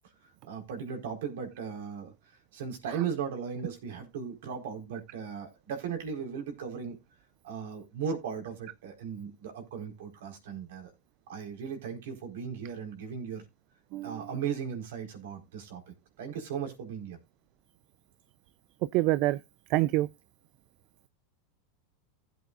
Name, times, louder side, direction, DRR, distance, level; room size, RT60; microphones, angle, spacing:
voice 1, 0.4-2.1 2.5-6.9 7.4-10.9 11.3-13.4 14.0-15.8 16.2-17.2, right 7 dB, 75° right, 4.4 m, -37 dB
voice 2, 18.9-19.4 19.7-20.1, right 17 dB, 55° right, 0.5 m, -25 dB
16.0 x 8.4 x 2.5 m
hypercardioid pair, 105°, 0 cm